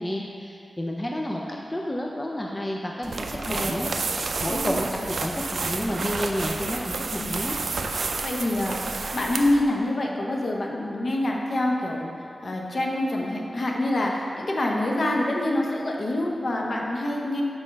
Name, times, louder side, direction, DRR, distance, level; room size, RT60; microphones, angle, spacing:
voice 1, 0.0-3.9 4.4-7.6, left 1 dB, 20° left, -1 dB, 0.5 m, -30 dB
sound 1, 3.0-9.6, right 3 dB, 80° right, 0.4 m, -30 dB
voice 2, 3.5-3.9 7.2-7.3 8.2-12.1 12.4-17.4, left 1 dB, 55° left, -1 dB, 0.9 m, -26 dB
6.4 x 4.4 x 5.2 m, 2.4 s
wide cardioid pair, 110°, 0 cm